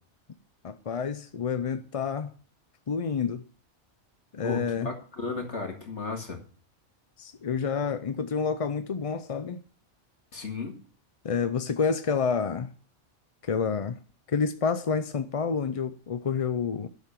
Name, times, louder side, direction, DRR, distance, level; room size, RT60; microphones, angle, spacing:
voice 1, 0.6-2.3 2.9-3.4 4.3-4.9 7.2-9.6 11.2-12.7 13.4-14.0 14.3-16.9, left 6 dB, 40° left, 0.5 m, -28 dB
voice 2, 4.4-6.4 10.3-10.8, left 4 dB, 70° left, 2.2 m, -34 dB
11.5 x 6.8 x 5.7 m
omnidirectional pair, 1.2 m